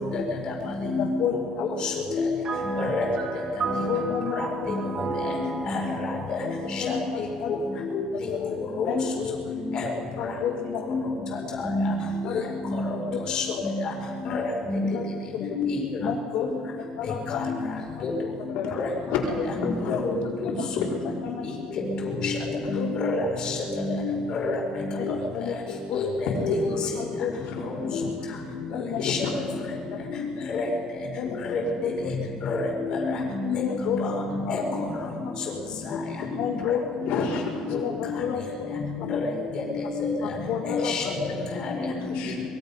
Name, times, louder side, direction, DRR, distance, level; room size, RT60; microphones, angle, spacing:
voice 1, 0.5-1.3 1.8-2.3 2.8-3.0 3.6-3.8 4.6-4.7 5.6-6.1 6.8-7.0 7.9-8.0 8.8-9.0 9.7-9.9 10.9-11.0 11.5-11.8 12.6-12.8 13.3-13.7 14.3-14.8 15.4-16.0 17.3-17.5 18.0-18.1 18.8-18.9 19.6-19.7 20.0-20.1 22.0-22.3 22.6-24.1 24.5-25.0 25.9-26.1 26.4-26.5 27.9-28.0 29.0-29.2 30.0-30.1 30.5-30.6 31.5-31.6 32.5-32.6 32.9-33.4 33.8-34.6 37.5-37.6 37.9-38.0 38.9-39.1 39.6-40.1 40.6-41.0 41.6-41.7 42.0-42.1, left 3 dB, 40° left, -1 dB, 4.8 m, -28 dB
voice 2, 1.0-1.7 3.9-4.4 6.3-6.4 6.8-7.5 8.3-8.6 8.8-9.0 10.2-10.8 12.2-12.4 13.1-13.2 13.5-13.6 14.2-14.4 14.8-15.1 15.3-15.5 16.0-16.5 17.0-17.4 18.5-18.7 21.3-21.5 22.7-22.9 25.0-25.1 25.3-25.5 25.9-26.0 27.0-27.3 28.7-29.0 31.1-31.3 31.8-31.9 32.9-33.0 33.4-34.1 34.4-34.6 35.9-36.0 36.4-36.8 37.7-38.5 40.5-41.1, left 9 dB, 60° left, 0 dB, 1.9 m, -30 dB
sound 1, 2.4-8.0, right 3 dB, 35° right, 2.4 m, -33 dB
voice 3, 19.6-20.2 20.4-21.3 22.6-23.1 24.3-24.5 26.3-26.4 26.7-27.1 27.4-28.2 28.9-29.5 31.3-31.4 34.5-34.6 36.0-36.4 37.0-37.8 40.2-40.6 40.9-42.5, left 5 dB, 80° left, -2 dB, 4.6 m, -33 dB
24.0 x 22.0 x 5.5 m, 2.3 s
cardioid pair, 160°, 2 cm